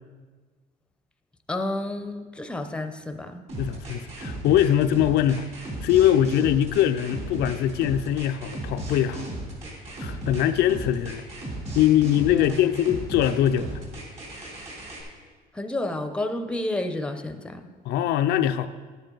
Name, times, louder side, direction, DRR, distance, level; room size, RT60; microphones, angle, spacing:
voice 1, 1.5-3.5 12.3-12.8 15.5-17.7, left 1 dB, 5° left, 7 dB, 0.7 m, -31 dB
sound 1, 3.5-15.0, right 1 dB, 40° right, 3.2 m, -35 dB
voice 2, 3.6-5.4 5.8-9.3 10.0-11.2 11.7-13.7 17.9-18.7, left 11 dB, 80° left, 9 dB, 0.5 m, -22 dB
10.5 x 9.0 x 3.9 m, 1.4 s
cardioid pair, 110°, 17 cm